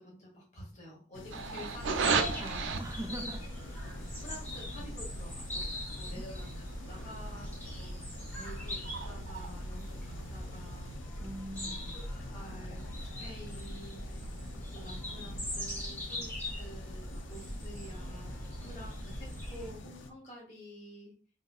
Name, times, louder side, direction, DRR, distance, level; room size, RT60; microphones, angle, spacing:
voice 1, 0.0-2.2 3.8-5.7 6.0-7.5 7.8-8.0 8.3-11.1 12.3-12.8 13.2-14.2 14.7-18.3 18.6-21.1, equal, 35° left, -3 dB, 1.2 m, -49 dB
sound 1, 1.1-20.1, left 2 dB, 90° left, 0.5 m, -48 dB
sound 2, 1.3-10.9, right 5 dB, 90° right, 0.4 m, -38 dB
sound 3, 1.7-19.7, equal, 10° left, 0.9 m, -41 dB
voice 2, 2.4-3.5 5.9-6.2 11.2-11.9, right 1 dB, 15° right, 2 dB, 0.5 m, -42 dB
3.9 x 2.6 x 2.3 m, 0.40 s
head